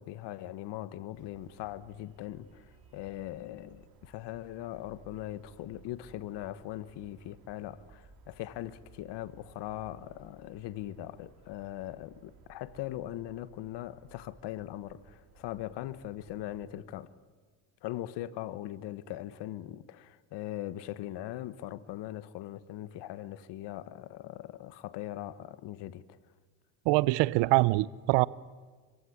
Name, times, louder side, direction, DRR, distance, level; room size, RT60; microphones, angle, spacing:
voice 1, 0.0-17.1 17.8-26.2, left 13 dB, 65° left, 1.2 m, -40 dB
sound 1, 1.1-16.8, right 5 dB, 55° right, 4.1 m, -59 dB
voice 2, 26.9-28.3, right 21 dB, 75° right, 0.7 m, -24 dB
26.5 x 16.0 x 9.8 m
supercardioid pair, 85°, 44 cm